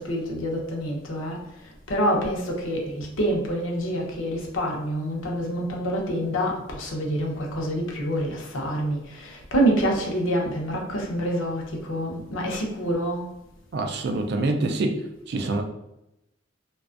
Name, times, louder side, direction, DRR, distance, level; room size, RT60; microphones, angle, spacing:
voice 1, 0.0-13.3, equal, 70° left, 0.6 m, -27 dB
voice 2, 13.7-15.0 15.3-15.6, right 2 dB, 55° right, 0.3 m, -25 dB
2.4 x 2.3 x 2.4 m
head